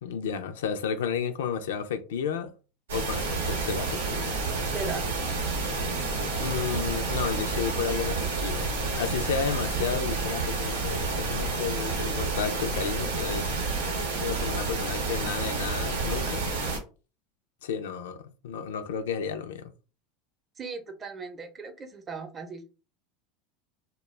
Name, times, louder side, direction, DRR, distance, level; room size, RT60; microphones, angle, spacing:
voice 1, 0.0-2.5 2.9-4.3 6.4-8.7 9.0-13.5 14.2-16.5 17.6-19.7, left 7 dB, 80° left, 0.3 m, -32 dB
sound 1, 2.9-16.8, right 3 dB, 85° right, 0.7 m, -29 dB
voice 2, 4.7-5.3 20.6-22.7, right 4 dB, 30° right, 0.6 m, -38 dB
2.2 x 2.0 x 3.1 m
hypercardioid pair, 90°, 0 cm